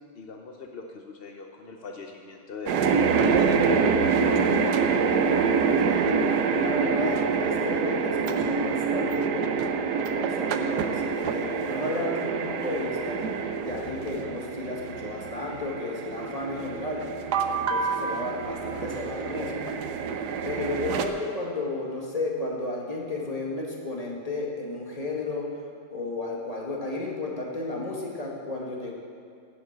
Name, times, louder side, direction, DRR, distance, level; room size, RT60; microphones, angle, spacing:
voice 1, 0.0-5.3, left 4 dB, 60° left, 2 dB, 0.6 m, -40 dB
sound 1, 2.7-21.1, right 5 dB, 65° right, 1.2 m, -26 dB
voice 2, 6.5-9.7 9.9-13.2 13.6-17.0 17.5-19.6 20.4-25.5 25.9-28.9, left 2 dB, 20° left, -2 dB, 1.7 m, -33 dB
11.5 x 7.8 x 8.1 m, 2.3 s
omnidirectional pair, 2.1 m